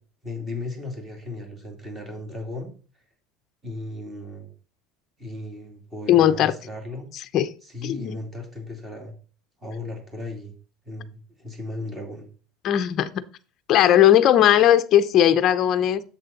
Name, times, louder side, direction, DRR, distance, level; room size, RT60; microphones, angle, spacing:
voice 1, 0.2-2.7 3.6-4.5 5.2-7.1 7.6-9.1 9.6-10.5 10.8-12.3, left 2 dB, 10° right, 2 dB, 2.9 m, -36 dB
voice 2, 6.1-6.5 7.3-7.5 7.8-8.2 12.6-13.2 13.7-16.0, left 11 dB, 35° left, 10 dB, 0.7 m, -18 dB
10.5 x 7.7 x 4.1 m, 0.39 s
cardioid pair, 170°, 0 cm